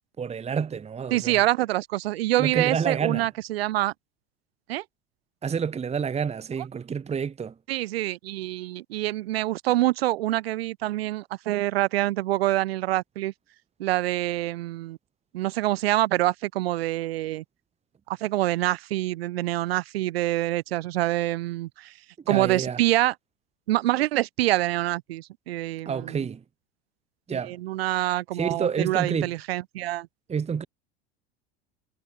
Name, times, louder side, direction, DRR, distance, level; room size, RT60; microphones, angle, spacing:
voice 1, 0.2-1.3 2.4-3.3 5.4-7.5 22.3-22.8 25.8-26.4 27.3-27.6 28.3-29.3 30.3-30.7, right 6 dB, 20° right, 1.3 m, -28 dB
voice 2, 1.1-3.9 4.7-4.8 7.7-13.3 13.8-15.0 15.3-17.4 18.1-21.9 22.3-23.1 23.7-26.3 27.3-30.1, right 16 dB, 75° right, 5.0 m, -26 dB
hypercardioid pair, 90°, 30 cm